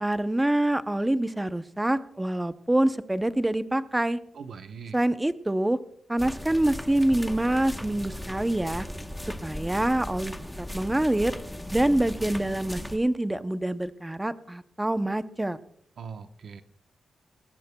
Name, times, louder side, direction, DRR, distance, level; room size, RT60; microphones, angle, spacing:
voice 1, 0.0-4.2 4.9-5.8 6.1-8.9 9.4-11.4 11.7-15.6, right 1 dB, 10° right, 12 dB, 0.6 m, -26 dB
voice 2, 4.3-5.0 16.0-16.6, right 6 dB, 65° right, 8 dB, 0.9 m, -41 dB
sound 1, 6.2-13.0, left 1 dB, 5° left, 0.9 m, -37 dB
22.0 x 19.5 x 2.2 m, 0.67 s
wide cardioid pair, 135°, 0 cm